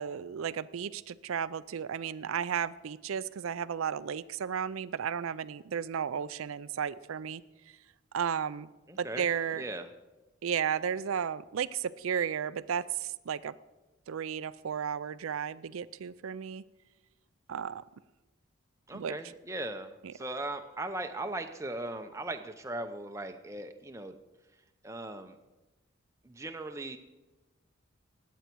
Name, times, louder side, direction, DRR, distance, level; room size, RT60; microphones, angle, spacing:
voice 1, 0.0-7.4 8.1-8.7 9.0-9.6 10.4-13.5 14.1-16.6 17.5-17.8 18.9-19.1, right 7 dB, 90° right, 15 dB, 0.4 m, -33 dB
voice 2, 8.9-9.2 9.5-9.9 18.9-24.2 24.8-25.4 26.2-27.0, right 2 dB, 15° right, 6 dB, 0.7 m, -38 dB
19.0 x 8.2 x 4.5 m, 1.1 s
head